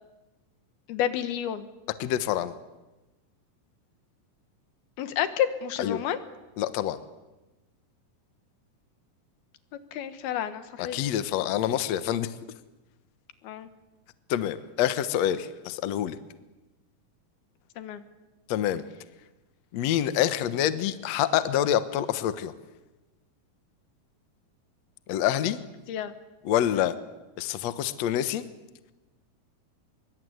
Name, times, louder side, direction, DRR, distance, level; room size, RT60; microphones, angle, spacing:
voice 1, 0.9-1.7 5.0-6.2 9.9-11.0 13.4-13.7 17.8-18.0 25.9-26.1 26.7-26.9, left 10 dB, 85° left, 11 dB, 3.3 m, -30 dB
voice 2, 2.0-2.5 5.8-6.0 6.6-7.0 10.8-12.3 14.3-16.2 18.5-18.8 19.7-22.5 25.1-25.6 26.5-26.9 27.4-28.4, left 11 dB, 65° left, 12 dB, 1.9 m, -26 dB
24.0 x 23.0 x 9.5 m, 1.1 s
omnidirectional pair, 4.4 m